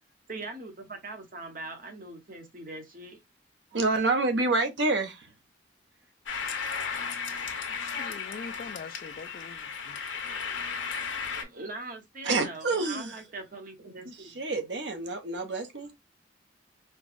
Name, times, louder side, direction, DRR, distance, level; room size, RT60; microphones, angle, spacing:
voice 1, 0.3-3.2 6.9-8.2 10.2-14.4, right 2 dB, 45° right, 1.1 m, -43 dB
voice 2, 3.7-5.3 12.2-13.2 14.1-15.9, right 3 dB, 70° right, 0.8 m, -28 dB
sound 1, 6.3-11.4, left 6 dB, 85° left, 0.8 m, -35 dB
voice 3, 7.8-10.0, left 5 dB, 50° left, 0.3 m, -43 dB
4.5 x 2.2 x 2.5 m
head